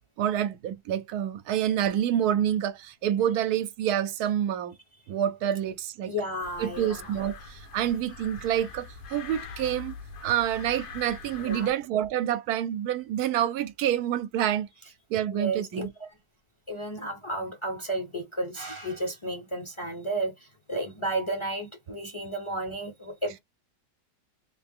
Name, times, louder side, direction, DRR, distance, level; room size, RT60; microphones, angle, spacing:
voice 1, 0.2-4.7 5.1-6.1 6.6-9.9 10.2-14.7 15.1-15.9, right 10 dB, 85° right, 1.1 m, -27 dB
voice 2, 6.0-7.1 11.4-11.7 15.3-15.9 16.7-20.3 20.7-23.4, right 1 dB, 25° left, 0.7 m, -32 dB
sound 1, 6.4-11.7, left 4 dB, 65° left, 1.6 m, -43 dB
3.4 x 2.7 x 3.6 m
omnidirectional pair, 1.6 m